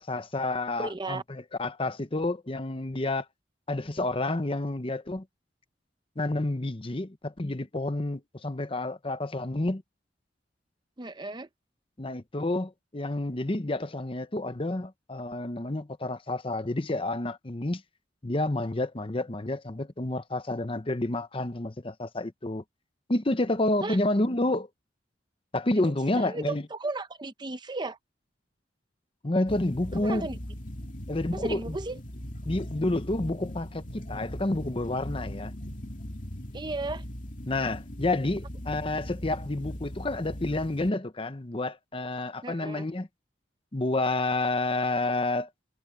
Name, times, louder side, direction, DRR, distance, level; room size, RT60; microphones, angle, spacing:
voice 1, 0.0-3.2 3.7-5.2 6.2-9.8 12.0-17.8 18.2-22.6 23.1-24.7 25.5-26.6 29.2-30.3 31.1-31.6 32.4-35.5 37.5-43.1 43.7-45.5, left 2 dB, 30° left, 0.9 m, -29 dB
voice 2, 0.8-1.2 11.0-11.5 23.8-24.0 26.2-28.0 30.0-30.4 31.3-32.0 36.5-37.0 42.4-42.9, right 2 dB, 25° right, 0.7 m, -34 dB
sound 1, 29.5-40.9, equal, 45° left, 2.5 m, -39 dB
head